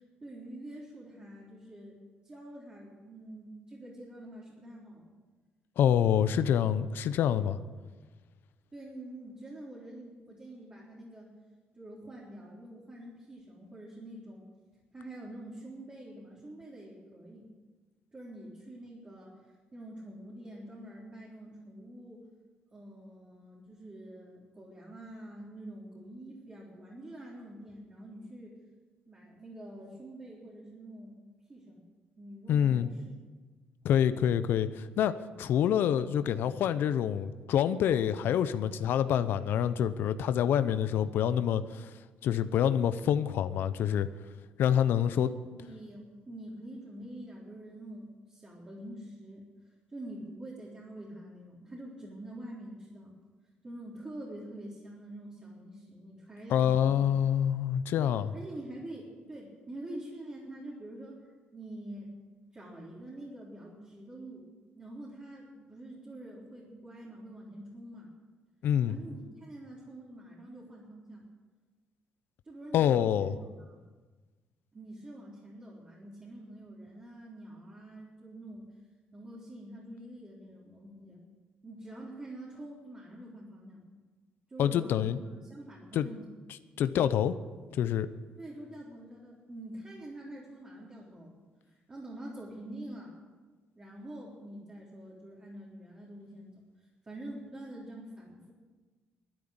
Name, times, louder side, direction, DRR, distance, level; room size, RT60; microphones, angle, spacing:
voice 1, 0.0-1.9 2.2-5.1 8.7-11.3 11.7-14.5 14.9-17.5 18.1-22.3 22.7-28.6 29.1-31.2 31.5-31.9 32.2-33.1 44.9-45.3 45.6-49.4 49.9-53.1 53.6-57.1 58.0-61.2 61.5-62.1 62.5-64.5 64.8-68.1 68.9-71.3 72.4-73.8 74.7-78.7 79.1-81.2 81.6-83.8 84.5-86.3 88.4-91.3 91.7-93.1 93.8-96.5 97.0-98.5, right 1 dB, 30° right, -5 dB, 3.8 m, -46 dB
voice 2, 5.8-7.6 32.5-32.9 33.8-41.9 42.2-44.1 44.6-45.3 56.5-58.3 68.6-69.0 72.7-73.3 84.6-85.2 85.9-86.1 86.8-87.3 87.7-88.1, left 9 dB, 70° left, 13 dB, 0.7 m, -27 dB
12.5 x 9.8 x 8.9 m, 1.3 s
supercardioid pair, 75°, 4 cm